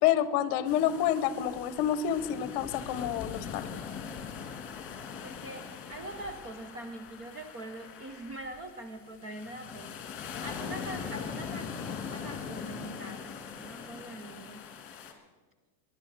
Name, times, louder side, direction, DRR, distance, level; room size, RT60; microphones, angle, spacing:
voice 1, 0.0-3.8, left 10 dB, 45° left, 14 dB, 0.9 m, -28 dB
sound 1, 0.7-15.1, left 6 dB, 25° left, 1.9 m, -41 dB
voice 2, 5.2-10.0 10.4-14.7, right 1 dB, 25° right, 6 dB, 0.7 m, -43 dB
21.5 x 11.0 x 4.1 m, 1.3 s
supercardioid pair, 160°, 49 cm